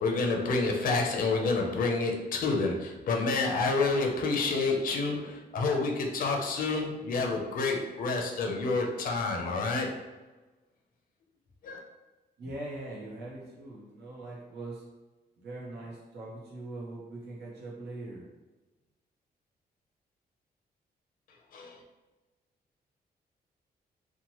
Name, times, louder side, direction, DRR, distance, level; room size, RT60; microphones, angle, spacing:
voice 1, 0.0-9.9 11.6-11.8 21.5-21.8, left 3 dB, 55° left, 1 dB, 0.4 m, -28 dB
voice 2, 12.4-14.8 15.4-18.3, right 2 dB, 80° right, -5 dB, 0.7 m, -41 dB
2.8 x 2.1 x 2.9 m, 1.1 s
wide cardioid pair, 150°, 17 cm